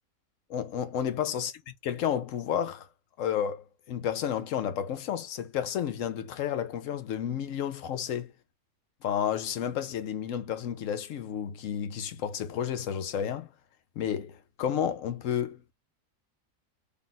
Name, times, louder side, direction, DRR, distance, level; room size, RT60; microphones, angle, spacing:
voice 1, 0.5-2.9 3.2-8.3 9.0-13.5 14.0-15.6, left 9 dB, 75° left, 1.0 m, -31 dB
3.4 x 2.5 x 3.9 m
omnidirectional pair, 1.4 m